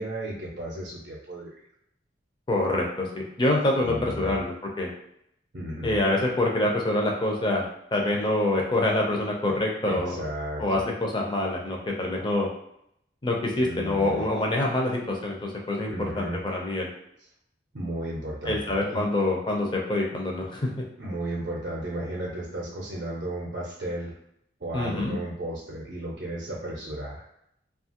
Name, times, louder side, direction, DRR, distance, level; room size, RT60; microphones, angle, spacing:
voice 1, 0.0-1.6 3.8-4.4 5.5-6.0 9.9-10.8 13.6-14.3 15.9-16.4 17.7-19.0 21.0-24.2 24.6-27.2, right 1 dB, 55° right, -4 dB, 0.6 m, -34 dB
voice 2, 2.5-4.9 5.8-7.6 7.9-10.2 10.6-12.5 13.2-16.9 18.5-20.7 24.7-25.2, left 1 dB, 25° left, 0 dB, 0.5 m, -26 dB
2.8 x 2.4 x 2.8 m, 0.74 s
head